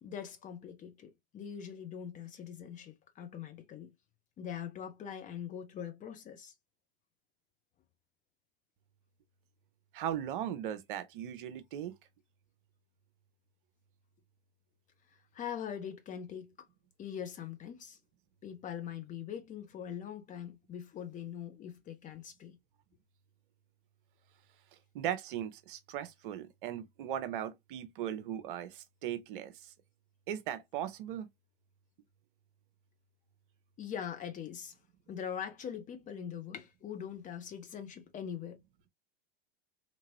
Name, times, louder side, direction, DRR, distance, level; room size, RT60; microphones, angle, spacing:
voice 1, 0.0-3.9 4.4-6.5 15.3-16.5 17.0-18.0 18.4-22.6 33.8-34.8 35.1-38.6, left 8 dB, 25° left, 0.7 m, -42 dB
voice 2, 9.9-11.9 24.9-29.7 30.3-31.3, right 10 dB, 55° right, 0.7 m, -38 dB
2.9 x 2.8 x 2.6 m
figure-of-eight pair, 90°, 30 cm